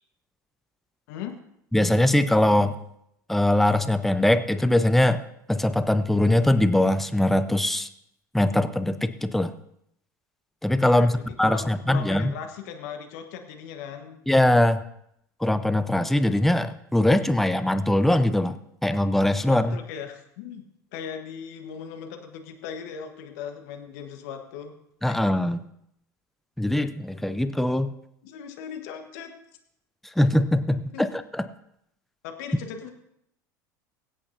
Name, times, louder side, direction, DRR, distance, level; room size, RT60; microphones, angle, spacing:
voice 1, 1.7-2.8 3.3-5.2 5.5-7.9 8.3-9.5 10.6-11.1 11.4-12.3 14.3-14.8 15.4-18.6 18.8-19.8 25.0-25.6 26.6-27.9 30.2-31.4, left 1 dB, ahead, 11 dB, 0.7 m, -21 dB
voice 2, 10.8-14.2 19.3-20.6 20.9-24.7 25.0-25.2 28.2-29.3 30.9-31.1 32.2-32.9, left 7 dB, 65° left, 5 dB, 1.4 m, -38 dB
22.5 x 8.4 x 2.8 m, 0.76 s
hypercardioid pair, 75°, 10 cm